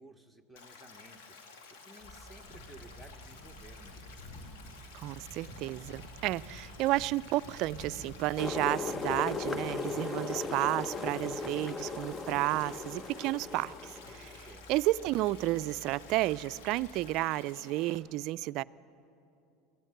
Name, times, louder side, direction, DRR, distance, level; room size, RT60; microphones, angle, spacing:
voice 1, 0.0-1.4 1.7-4.2 14.4-14.7, right 1 dB, 5° left, 1.6 m, -55 dB
Stream, 0.6-18.0, left 4 dB, 80° left, 2.5 m, -53 dB
sound 1, 2.0-17.2, equal, 45° left, 4.4 m, -52 dB
voice 2, 4.9-13.7 14.1-18.6, right 17 dB, 60° right, 0.4 m, -32 dB
sound 2, 8.4-14.5, left 4 dB, 20° left, 0.8 m, -37 dB
24.0 x 15.5 x 7.9 m
supercardioid pair, 100°, 0 cm